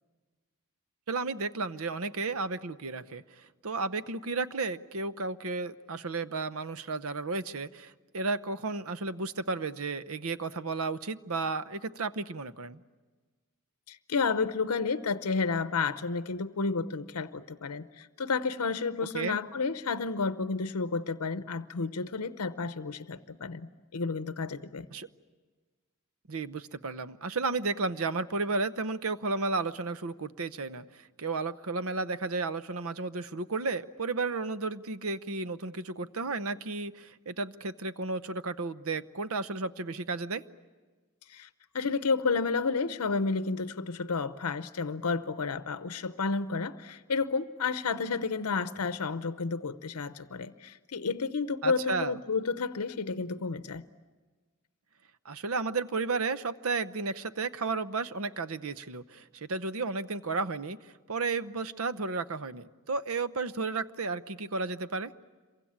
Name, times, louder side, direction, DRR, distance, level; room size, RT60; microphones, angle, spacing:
voice 1, 1.1-12.8 19.1-19.4 24.9-25.1 26.3-40.4 51.6-52.2 55.2-65.1, right 3 dB, 65° right, 13 dB, 0.8 m, -33 dB
voice 2, 13.9-24.9 41.3-41.5 41.7-53.8, left 4 dB, 85° left, 12 dB, 0.8 m, -31 dB
27.0 x 23.5 x 8.8 m, 1.4 s
head